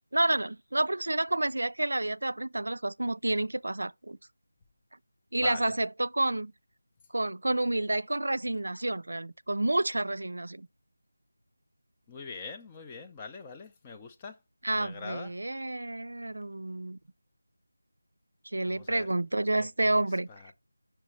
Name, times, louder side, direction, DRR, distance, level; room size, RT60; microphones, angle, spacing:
voice 1, 0.1-4.2 5.3-6.5 7.1-10.7 14.6-17.0 18.5-20.5, right 2 dB, 70° right, 0.4 m, -29 dB
voice 2, 12.1-14.4 14.8-15.3 18.6-19.1 19.6-20.0 20.3-20.5, left 4 dB, 10° left, 0.4 m, -43 dB
5.7 x 4.1 x 6.2 m
figure-of-eight pair, 175°, 0 cm